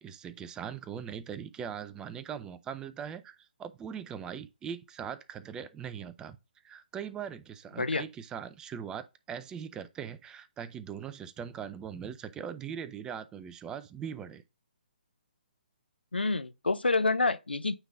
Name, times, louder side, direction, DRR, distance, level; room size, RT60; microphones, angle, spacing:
voice 1, 0.0-6.4 6.6-14.4, right 8 dB, 15° right, 0.5 m, -40 dB
voice 2, 16.1-17.7, left 3 dB, 85° left, 0.6 m, -28 dB
9.0 x 3.8 x 3.7 m
figure-of-eight pair, 135°, 5 cm